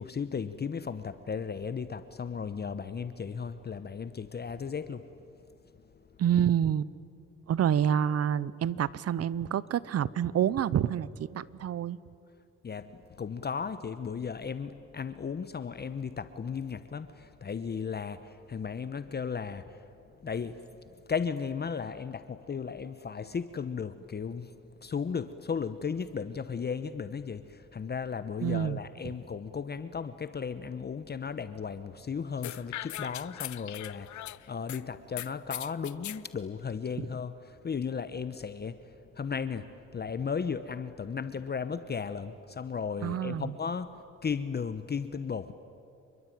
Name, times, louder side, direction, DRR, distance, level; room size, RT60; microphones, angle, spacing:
voice 1, 0.0-5.1 12.6-19.8 20.2-20.6 21.1-45.5, left 6 dB, 35° left, 12 dB, 1.0 m, -35 dB
voice 2, 6.2-6.9 7.5-12.0 28.4-28.8 29.1-29.2 43.0-43.5, right 9 dB, 55° right, 20 dB, 0.9 m, -28 dB
sound 1, 32.4-34.8 35.2-36.2, left 14 dB, 70° left, 0.8 m, -40 dB
28.0 x 22.5 x 9.3 m, 2.7 s
cardioid pair, 90°, 30 cm